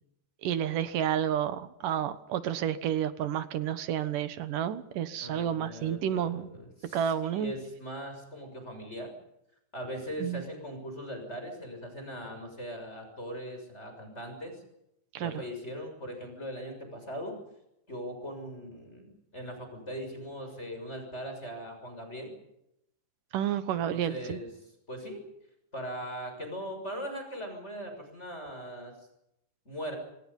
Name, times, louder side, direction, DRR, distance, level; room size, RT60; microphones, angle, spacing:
voice 1, 0.4-6.5 6.9-7.5 10.2-10.4 15.1-15.4 23.3-24.4, right 9 dB, 85° right, 12 dB, 3.0 m, -30 dB
voice 2, 5.2-9.1 9.7-14.6 15.2-17.4 17.9-22.3 23.9-24.5 24.9-25.2 25.7-28.9 29.7-30.0, equal, 20° left, 4 dB, 6.9 m, -40 dB
27.0 x 25.5 x 5.5 m, 0.82 s
omnidirectional pair, 3.7 m